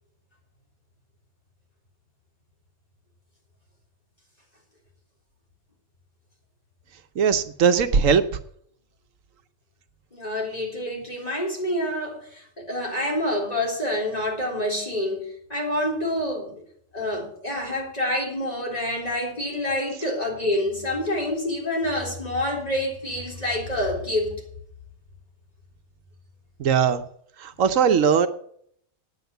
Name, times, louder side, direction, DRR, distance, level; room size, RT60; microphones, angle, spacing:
voice 1, 7.2-8.2 26.6-27.0 27.4-28.3, right 6 dB, 85° right, 10 dB, 1.2 m, -19 dB
voice 2, 10.1-16.6 16.9-24.3, left 1 dB, 30° left, -2 dB, 3.8 m, -27 dB
9.4 x 7.9 x 8.0 m, 0.65 s
omnidirectional pair, 1.3 m